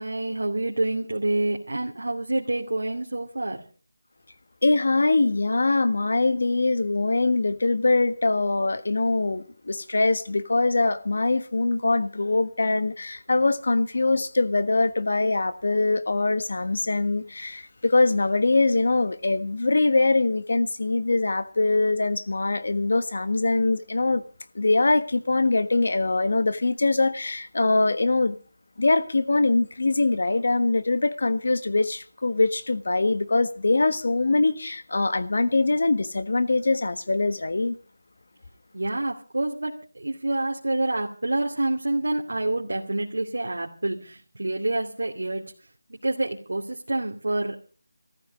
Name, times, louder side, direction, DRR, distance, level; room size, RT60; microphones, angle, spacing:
voice 1, 0.0-3.6 38.7-45.5 45.9-47.7, right 2 dB, 90° right, 2.6 m, -27 dB
voice 2, 4.6-24.2 24.5-28.4 28.8-37.8, left 3 dB, 55° left, 1.4 m, -23 dB
16.0 x 14.0 x 5.2 m
figure-of-eight pair, 175°, 0 cm